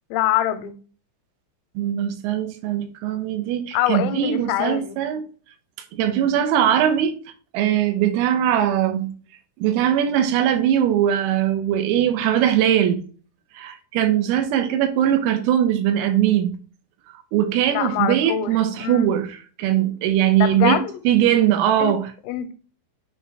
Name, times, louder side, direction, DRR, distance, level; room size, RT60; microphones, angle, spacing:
voice 1, 0.1-0.8 3.7-5.0 17.7-19.1 20.4-20.9 21.8-22.0 22.3-22.5, left 12 dB, 85° left, 3.3 m, -24 dB
voice 2, 1.8-5.2 5.9-7.1 7.5-9.1 9.6-13.0 13.6-16.6 17.3-22.1, right 10 dB, 85° right, 3.5 m, -20 dB
8.9 x 3.0 x 4.7 m
omnidirectional pair, 6.0 m